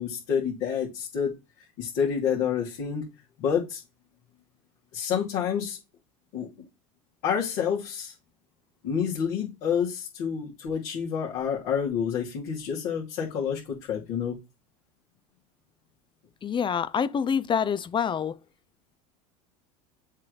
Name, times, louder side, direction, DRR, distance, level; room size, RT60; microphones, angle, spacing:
voice 1, 0.0-1.3 1.8-3.0 3.4-3.8 4.9-5.8 6.3-6.5 7.2-8.1 8.8-14.4, left 7 dB, 65° left, 2.6 m, -28 dB
voice 2, 16.4-18.4, left 7 dB, 25° left, 0.6 m, -26 dB
7.3 x 3.2 x 4.0 m
hypercardioid pair, 85°, 19 cm